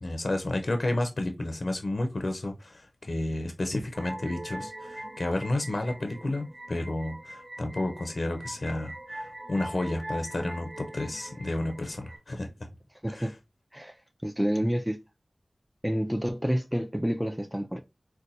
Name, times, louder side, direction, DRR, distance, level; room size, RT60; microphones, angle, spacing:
voice 1, 0.0-12.5 13.1-13.3, left 1 dB, 65° left, 0.5 m, -31 dB
sound 1, 3.9-12.2, right 1 dB, 35° right, 0.8 m, -42 dB
voice 2, 13.0-13.3 13.7-13.9 14.2-15.0 15.8-17.8, equal, 5° right, 0.4 m, -28 dB
3.9 x 2.2 x 2.6 m
wide cardioid pair, 60°, 0 cm